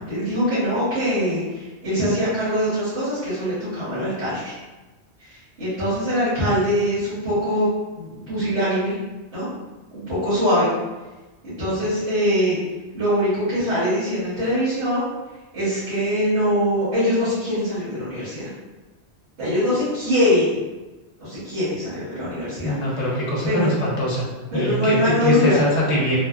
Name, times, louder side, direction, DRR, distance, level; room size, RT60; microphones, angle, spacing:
voice 1, 0.1-4.5 5.2-7.7 8.0-8.9 9.3-9.5 9.9-10.7 11.4-12.6 12.9-15.1 15.5-18.5 19.4-20.6 21.2-22.7 23.4-23.7 24.5-25.6, equal, 75° right, -13 dB, 1.5 m, -22 dB
voice 2, 22.6-24.2 24.5-26.2, left 1 dB, 35° left, -6 dB, 0.7 m, -23 dB
3.2 x 2.0 x 2.3 m, 1.2 s
omnidirectional pair, 1.1 m